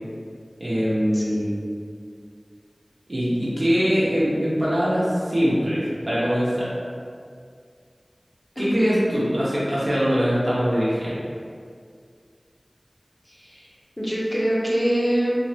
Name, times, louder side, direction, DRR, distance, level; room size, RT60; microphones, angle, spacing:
voice 1, 0.6-1.6 3.1-6.7 8.6-11.2, equal, 65° right, -9 dB, 0.9 m, -22 dB
voice 2, 1.1-1.6 8.6-9.0 13.3-13.7 14.0-15.4, equal, 25° left, -6 dB, 0.7 m, -25 dB
3.5 x 2.1 x 2.7 m, 2.2 s
wide cardioid pair, 50°, 0 cm